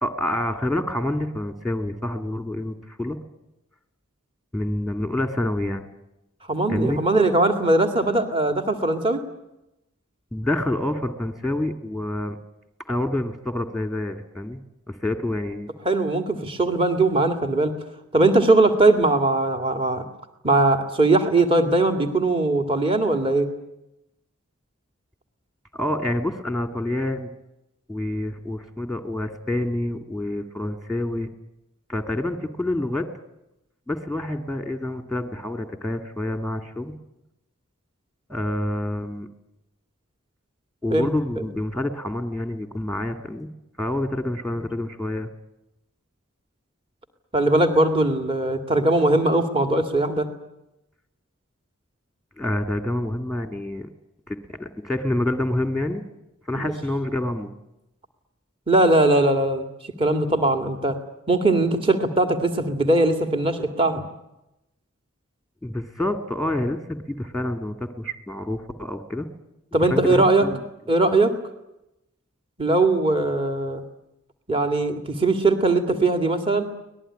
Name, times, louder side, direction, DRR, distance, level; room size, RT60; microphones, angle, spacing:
voice 1, 0.0-3.2 4.5-5.8 6.7-7.0 10.3-12.4 12.9-14.6 14.9-15.7 25.7-27.3 27.9-31.3 31.9-33.1 33.9-36.9 38.3-39.3 40.8-43.5 43.8-45.3 52.4-53.9 54.3-56.0 56.5-57.5 65.6-69.3 69.8-70.6, left 1 dB, ahead, 7 dB, 1.9 m, -27 dB
voice 2, 6.5-9.2 15.9-17.7 18.1-20.0 20.4-23.5 40.9-41.1 47.3-50.3 56.6-56.7 58.7-59.7 60.0-61.0 61.3-64.0 69.7-70.5 70.9-71.3 72.6-73.8 74.5-76.7, right 2 dB, 25° right, 6 dB, 2.2 m, -20 dB
24.5 x 19.5 x 10.0 m, 0.89 s
head